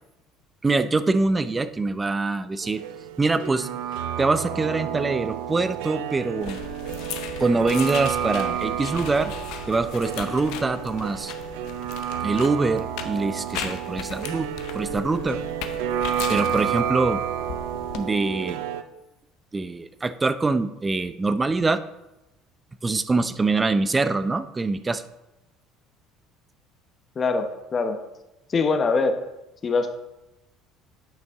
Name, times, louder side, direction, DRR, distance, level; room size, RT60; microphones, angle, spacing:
voice 1, 0.6-2.8 3.2-3.7 4.2-6.6 7.4-9.3 9.7-11.3 12.2-15.4 16.3-17.2 18.0-18.6 19.5-21.8 22.8-25.0, right 3 dB, 20° right, 12 dB, 0.5 m, -24 dB
sound 1, 2.6-18.8, right 9 dB, 80° right, 0.4 m, -30 dB
sound 2, 6.4-18.0, left 9 dB, 70° left, 0.7 m, -38 dB
voice 2, 27.2-28.0 28.5-29.2 29.6-29.9, left 4 dB, 35° left, 7 dB, 1.0 m, -23 dB
9.2 x 5.3 x 3.6 m, 0.96 s
supercardioid pair, 80°, 0 cm